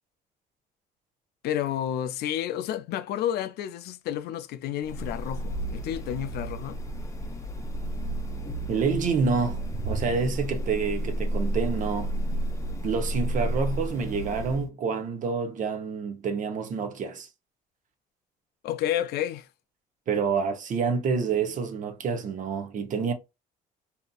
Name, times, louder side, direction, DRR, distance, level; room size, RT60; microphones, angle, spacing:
voice 1, 1.4-6.8 18.6-19.5, left 11 dB, 70° left, 0.4 m, -30 dB
sound 1, 4.8-14.7, right 1 dB, 20° left, 0.6 m, -32 dB
voice 2, 8.7-12.1 12.8-17.3 20.1-23.1, right 5 dB, 50° right, 0.7 m, -28 dB
2.8 x 2.5 x 2.2 m
cardioid pair, 110°, 17 cm